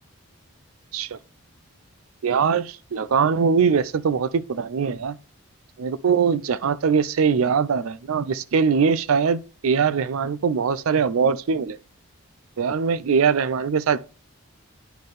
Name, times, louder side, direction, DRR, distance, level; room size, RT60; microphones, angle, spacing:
voice 1, 2.2-5.2 5.8-11.8 12.6-14.0, right 6 dB, 70° right, 0.4 m, -22 dB
10.0 x 4.3 x 3.2 m
head